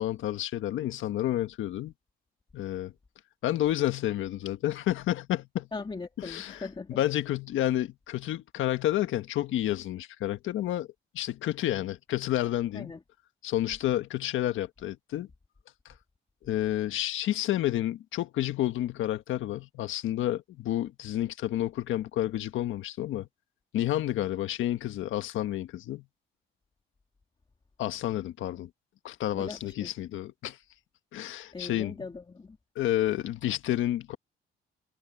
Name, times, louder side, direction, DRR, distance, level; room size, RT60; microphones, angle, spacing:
voice 1, 0.0-1.9 2.5-2.9 3.4-5.7 6.2-6.6 7.0-10.9 11.1-12.9 13.4-15.3 16.4-23.3 23.7-26.0 27.8-28.7 29.0-30.6 31.1-31.9 32.7-34.2, left 13 dB, 80° left, 1.5 m, -30 dB
voice 2, 5.7-7.0 12.7-13.0 29.3-29.9 31.5-32.6, left 4 dB, 25° left, 2.2 m, -39 dB
cardioid pair, 90°, 20 cm